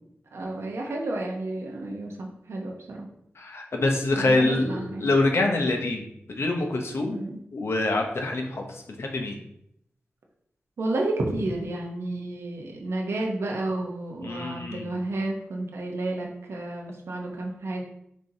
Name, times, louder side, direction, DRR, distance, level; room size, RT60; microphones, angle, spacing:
voice 1, 0.3-3.1 4.2-5.1 7.1-7.4 10.8-17.8, right 2 dB, 85° right, 0 dB, 0.8 m, -31 dB
voice 2, 3.4-7.2 7.5-9.4 14.2-15.0, left 2 dB, 75° left, 2 dB, 0.8 m, -26 dB
6.2 x 2.8 x 2.8 m, 0.76 s
cardioid pair, 50°, 4 cm